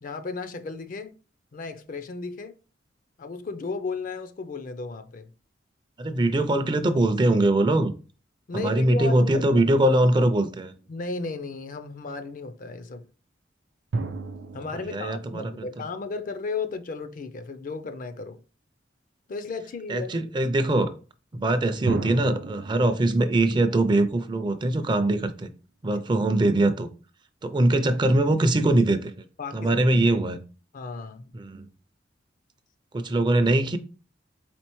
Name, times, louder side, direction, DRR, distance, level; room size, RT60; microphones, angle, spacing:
voice 1, 0.0-1.2 1.5-2.5 3.2-5.3 8.5-9.6 10.9-13.1 14.5-18.4 19.3-20.2 29.4-29.8 30.7-31.3, left 4 dB, 45° left, 0.4 m, -34 dB
voice 2, 6.0-7.9 8.5-10.7 14.8-15.6 19.9-20.9 21.3-25.5 25.8-26.9 27.4-29.2 29.5-30.4 31.3-31.7 32.9-33.8, right 1 dB, 25° right, 0.4 m, -22 dB
sound 1, 10.8-10.9 13.9-16.6 21.9-24.8, right 3 dB, 85° right, 0.5 m, -35 dB
4.3 x 3.8 x 3.0 m
head